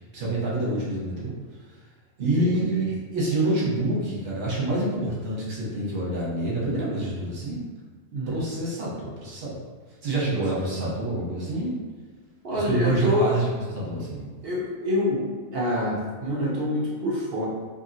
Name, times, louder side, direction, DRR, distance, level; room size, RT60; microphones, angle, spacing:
voice 1, 0.1-1.3 2.2-7.6 8.3-9.7 10.0-11.8 12.5-14.3, right 2 dB, 45° right, -7 dB, 0.7 m, -27 dB
voice 2, 2.2-2.8 8.1-8.4 10.7-10.9 12.4-13.4 14.4-15.3 15.5-17.4, left 1 dB, 80° right, -6 dB, 0.5 m, -26 dB
2.7 x 2.6 x 2.6 m, 1.5 s
omnidirectional pair, 1.7 m